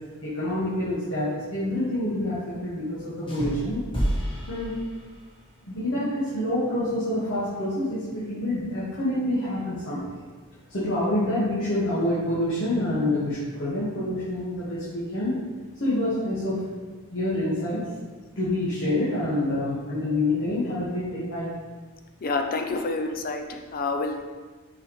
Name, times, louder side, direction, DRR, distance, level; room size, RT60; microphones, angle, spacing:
voice 1, 0.2-3.8 4.5-4.8 5.6-10.1 10.7-15.4 15.8-16.7 17.1-17.8 18.3-21.5, left 1 dB, 60° left, -10 dB, 1.6 m, -27 dB
sound 1, 3.3-5.5, equal, 25° left, 1.5 m, -30 dB
voice 2, 22.2-24.2, left 3 dB, 45° left, 5 dB, 0.5 m, -28 dB
6.6 x 4.8 x 3.2 m, 1.4 s
head